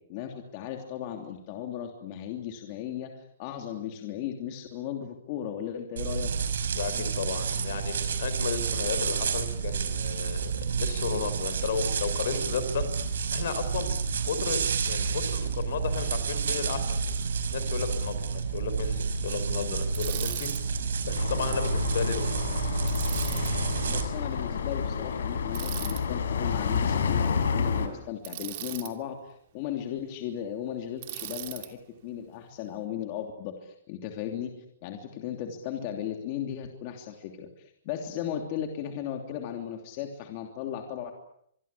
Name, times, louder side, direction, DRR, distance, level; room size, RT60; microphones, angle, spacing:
voice 1, 0.1-6.3 23.9-34.5 34.8-41.1, left 10 dB, 30° left, 4 dB, 3.0 m, -36 dB
sound 1, 6.0-24.0, right 5 dB, 85° right, 5.6 m, -30 dB
voice 2, 6.7-12.9 13.3-13.9 14.2-17.0 17.5-20.5 21.0-22.4, left 6 dB, 60° left, 11 dB, 5.1 m, -33 dB
Bicycle, 19.9-20.6 22.9-23.5 25.5-26.0 28.2-28.9 31.0-31.7, right 15 dB, 40° right, 2.7 m, -38 dB
sound 2, 21.2-27.9, left 6 dB, 80° left, 4.8 m, -29 dB
26.0 x 23.0 x 8.5 m, 0.71 s
hypercardioid pair, 170°, 0 cm